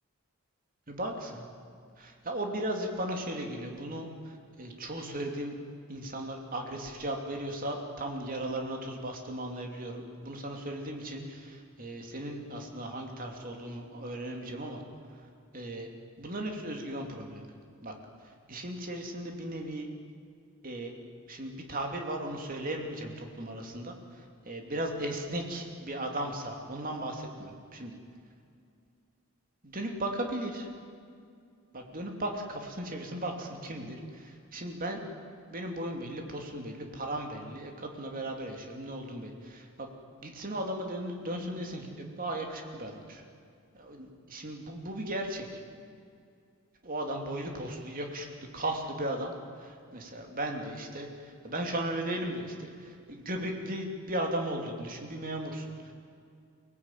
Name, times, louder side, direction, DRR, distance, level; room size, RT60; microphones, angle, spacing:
voice 1, 0.9-1.5 2.0-5.5 5.9-14.8 15.2-15.3 15.5-15.9 16.2-17.5 17.8-17.9 18.5-19.9 20.6-20.9 21.3-27.9 29.6-30.7 31.7-35.0 35.5-39.9 40.2-43.2 43.7-45.6 46.8-48.3 48.5-55.9, right 1 dB, 40° right, 2 dB, 2.8 m, -36 dB
24.0 x 19.0 x 9.1 m, 2.4 s
head